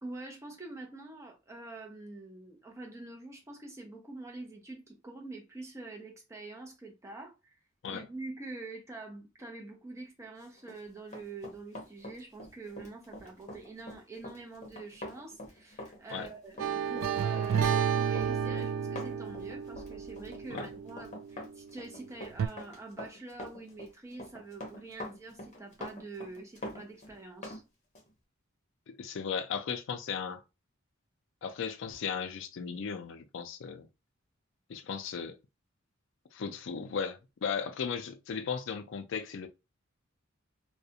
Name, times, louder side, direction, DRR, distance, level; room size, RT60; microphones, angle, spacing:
voice 1, 0.0-7.5 7.9-27.6, right 3 dB, 15° right, 0.6 m, -46 dB
Run, 10.6-27.6 28.0-28.1, left 1 dB, 35° left, 0.7 m, -45 dB
sound 1, 16.6-21.5 22.4-22.5, right 7 dB, 75° right, 0.3 m, -31 dB
voice 2, 28.9-30.4 31.4-33.9 34.7-35.4 36.3-39.5, left 6 dB, 65° left, 0.4 m, -36 dB
2.4 x 2.1 x 2.7 m
head